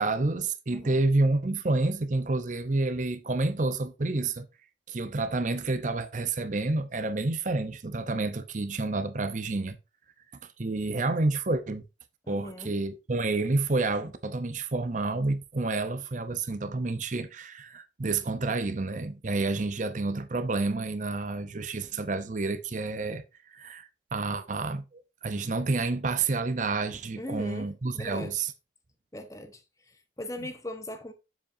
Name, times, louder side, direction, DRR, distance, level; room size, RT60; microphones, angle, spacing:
voice 1, 0.0-4.4 4.9-9.8 10.6-11.8 12.3-23.2 23.5-28.5, right 3 dB, 40° right, 0.7 m, -29 dB
voice 2, 0.7-1.0 12.2-12.7 27.2-28.4 29.1-31.1, left 1 dB, 15° left, 0.8 m, -40 dB
7.5 x 7.3 x 2.6 m
head